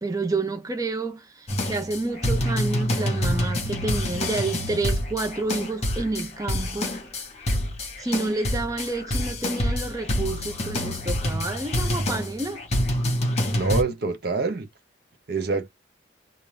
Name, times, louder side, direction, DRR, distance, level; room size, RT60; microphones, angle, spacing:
voice 1, 0.0-7.0 8.0-12.6, right 3 dB, 20° right, 0.5 m, -29 dB
sound 1, 1.5-13.8, left 1 dB, 35° left, 1.1 m, -27 dB
voice 2, 13.5-14.7 15.3-15.7, right 4 dB, 55° right, 0.7 m, -26 dB
2.5 x 2.5 x 3.2 m
head